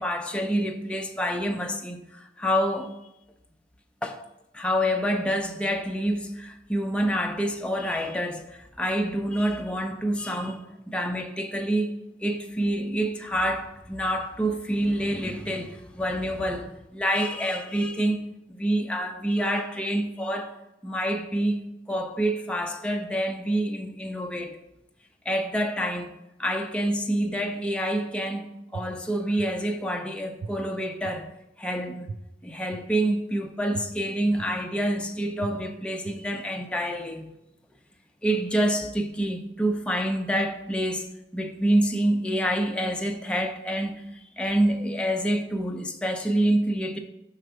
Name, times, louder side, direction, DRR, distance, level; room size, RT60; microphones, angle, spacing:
voice 1, 0.0-2.9 4.0-4.2 4.5-11.9 12.2-18.2 18.5-20.5 20.8-24.6 25.3-26.1 26.4-28.5 28.7-31.3 31.6-32.1 32.4-37.3 38.2-41.1 41.3-44.0 44.4-47.0, equal, 5° left, 0.6 m, -27 dB
sound 1, 28.7-28.8 29.4-29.5 30.4-30.5 31.0-31.1 32.1-32.2 32.7-32.8 33.7-33.8 34.4-34.5 35.4-35.5 36.0-36.1, right 4 dB, 80° right, 0.6 m, -35 dB
6.0 x 4.8 x 5.5 m
head